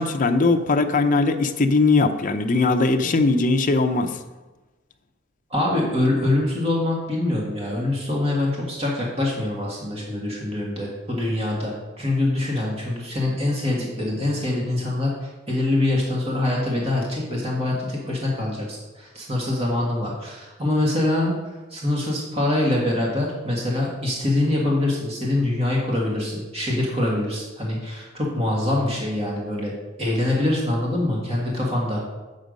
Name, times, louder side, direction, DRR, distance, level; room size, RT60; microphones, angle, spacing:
voice 1, 0.0-4.2, left 3 dB, 45° left, 6 dB, 0.6 m, -20 dB
voice 2, 5.5-15.1 15.5-21.3 21.7-29.7 30.0-32.1, left 1 dB, 30° right, -3 dB, 1.7 m, -24 dB
8.0 x 6.4 x 5.2 m, 1.2 s
head